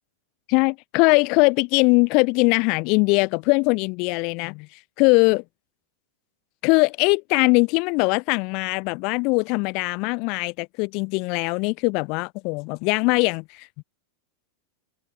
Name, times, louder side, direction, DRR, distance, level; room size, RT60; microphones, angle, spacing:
voice 1, 0.5-4.7 5.0-5.4 6.6-13.8, left 30 dB, 50° left, 3.5 m, -21 dB
supercardioid pair, 145°, 0 cm